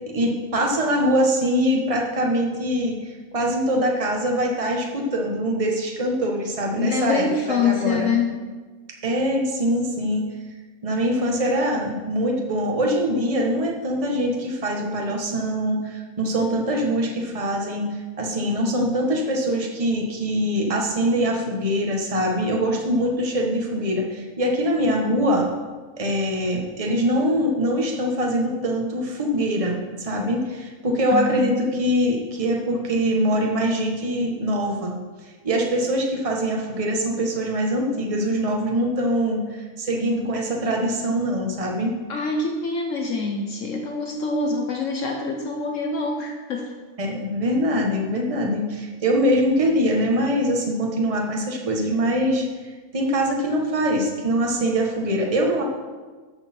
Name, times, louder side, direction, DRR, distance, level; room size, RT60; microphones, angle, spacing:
voice 1, 0.1-8.2 9.0-10.2 10.8-25.5 26.0-34.9 35.4-41.9 47.0-52.4 52.9-55.6, equal, 25° right, 0 dB, 1.4 m, -23 dB
voice 2, 6.8-8.3 31.1-31.7 42.1-46.6, left 4 dB, 65° left, 1 dB, 1.3 m, -25 dB
14.0 x 6.6 x 4.4 m, 1.4 s
omnidirectional pair, 1.4 m